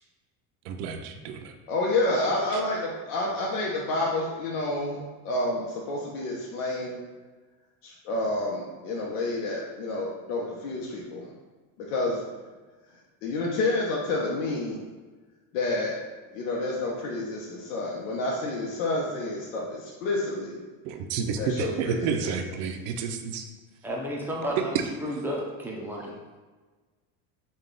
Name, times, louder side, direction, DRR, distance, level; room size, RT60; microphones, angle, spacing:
voice 1, 0.7-1.5 2.5-2.6 20.8-23.5 24.6-24.7, right 6 dB, 65° right, 5 dB, 0.6 m, -30 dB
voice 2, 1.7-5.0 5.2-7.0 7.8-11.3 11.8-12.2 13.2-14.8 15.5-16.0 16.3-20.6 21.4-22.3, left 2 dB, 85° left, -3 dB, 0.9 m, -29 dB
voice 3, 23.8-26.1, equal, 5° right, -3 dB, 0.5 m, -32 dB
5.3 x 2.3 x 3.8 m, 1.3 s
cardioid pair, 145°, 44 cm